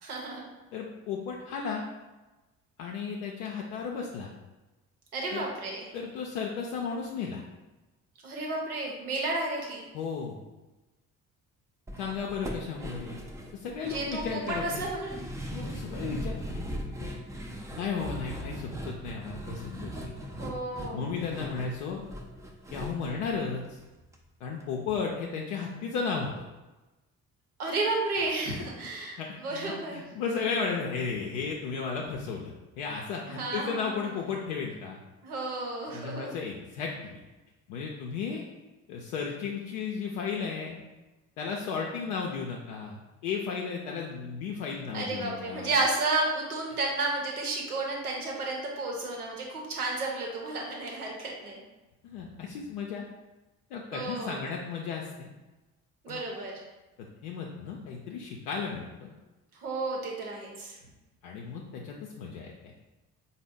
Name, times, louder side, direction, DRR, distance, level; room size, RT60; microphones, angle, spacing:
voice 1, 0.0-0.4 5.1-5.9 8.2-9.9 13.8-15.2 20.4-21.1 27.6-30.0 33.3-34.1 35.2-36.4 44.9-51.6 53.9-54.4 56.0-56.6 59.6-60.8, right 2 dB, 90° right, -1 dB, 0.8 m, -32 dB
voice 2, 0.7-1.9 2.8-4.3 5.3-5.4 5.9-7.4 9.9-10.4 12.0-13.2 13.5-14.8 15.5-17.1 17.7-20.1 20.9-22.0 22.7-23.8 24.4-26.4 29.2-35.0 35.9-37.2 37.7-38.4 38.9-40.8 41.4-45.7 52.0-53.1 53.7-55.3 56.1-56.2 57.0-59.1 61.2-62.7, left 5 dB, 70° left, -1 dB, 0.5 m, -34 dB
sound 1, 11.9-24.2 24.4-24.5 24.9-25.0, equal, 10° right, 0.4 m, -39 dB
4.0 x 2.1 x 3.6 m, 1.1 s
figure-of-eight pair, 50°, 43 cm